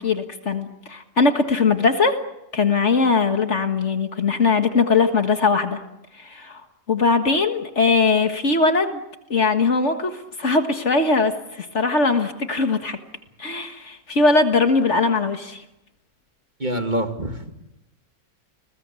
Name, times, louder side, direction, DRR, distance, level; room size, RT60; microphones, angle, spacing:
voice 1, 0.0-2.2 2.5-5.8 6.2-6.6 6.9-9.0 9.3-13.0 13.4-15.6, left 4 dB, 50° left, 7 dB, 1.9 m, -20 dB
voice 2, 16.6-17.6, right 1 dB, 30° right, 5 dB, 2.2 m, -26 dB
30.0 x 21.0 x 8.3 m, 0.93 s
omnidirectional pair, 1.6 m